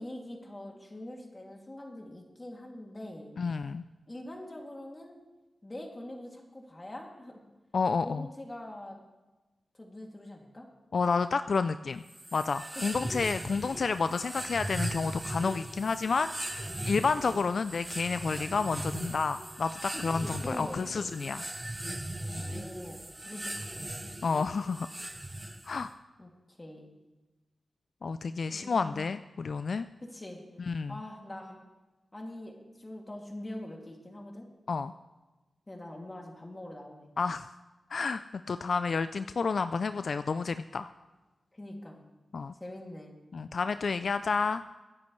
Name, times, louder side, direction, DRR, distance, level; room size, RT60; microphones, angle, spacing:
voice 1, 0.0-3.3 4.1-5.2 5.6-7.4 8.0-9.0 9.7-10.7 12.9-13.1 19.9-21.1 22.1-23.9 26.2-26.9 28.5-29.0 30.0-30.4 30.9-31.6 32.1-34.5 35.7-37.1 41.5-42.0 42.6-43.2, left 1 dB, 25° left, 0 dB, 2.6 m, -44 dB
voice 2, 3.4-3.8 7.7-8.3 10.9-12.0 12.3-21.4 22.4-22.5 24.2-24.9 25.6-25.9 28.0-29.9 30.6-30.9 34.7-34.9 37.2-37.5 37.9-38.2 38.5-40.9 42.3-42.5 43.3-44.6, left 4 dB, 70° left, 12 dB, 0.3 m, -30 dB
sound 1, 12.1-25.9, right 1 dB, 20° right, 0.8 m, -39 dB
25.5 x 9.6 x 3.2 m, 1.2 s
cardioid pair, 70°, 0 cm